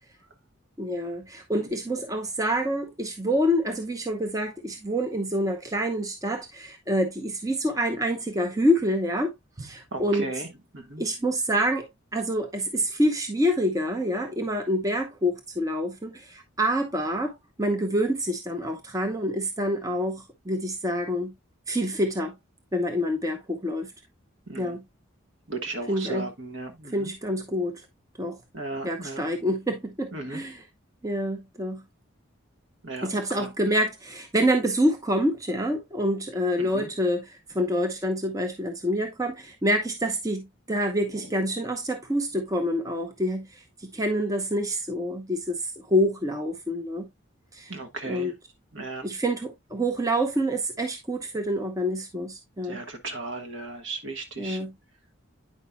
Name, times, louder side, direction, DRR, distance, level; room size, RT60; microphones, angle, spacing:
voice 1, 0.8-9.3 9.6-10.3 11.0-17.3 17.6-21.3 21.7-22.3 22.7-23.9 24.6-24.8 25.9-26.3 26.9-27.8 28.2-28.4 28.8-30.6 31.0-31.8 33.0-43.5 43.8-45.6 45.9-47.1 47.5-47.8 48.0-48.3 49.0-52.8 54.4-54.7, equal, 15° right, 0.7 m, -27 dB
voice 2, 9.9-10.5 10.7-11.0 24.5-24.8 25.5-27.1 28.5-29.2 30.1-30.4 32.8-33.1 36.6-36.9 47.7-48.3 48.7-49.1 52.7-54.6, right 3 dB, 65° right, 1.4 m, -35 dB
9.3 x 5.5 x 2.2 m
head